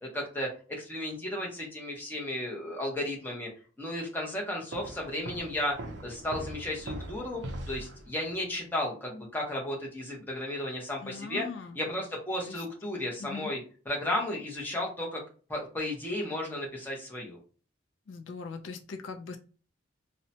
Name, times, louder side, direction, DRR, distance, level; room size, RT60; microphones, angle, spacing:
voice 1, 0.0-3.5 3.8-11.5 11.7-13.6 13.9-15.2 15.5-17.4, left 1 dB, 10° left, -2 dB, 0.7 m, -34 dB
sound 1, 4.7-8.4, right 1 dB, 60° right, 0.4 m, -41 dB
voice 2, 11.0-11.8 12.5-12.6 13.2-13.6 18.1-19.4, left 4 dB, 70° left, 6 dB, 0.3 m, -40 dB
2.7 x 2.1 x 2.6 m, 0.37 s
head